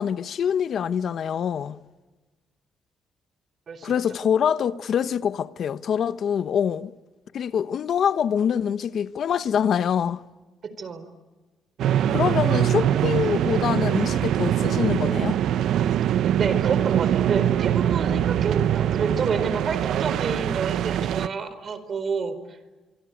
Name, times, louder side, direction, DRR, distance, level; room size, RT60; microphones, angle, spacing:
voice 1, 0.0-1.8 3.8-6.9 7.3-10.2 12.1-15.4, left 8 dB, 60° left, 1.0 m, -25 dB
voice 2, 10.6-11.1 16.4-22.6, right 5 dB, 50° right, 4.5 m, -29 dB
sound 1, 11.8-21.3, right 10 dB, 75° right, 0.8 m, -23 dB
25.5 x 25.0 x 9.3 m
cardioid pair, 90°, 0 cm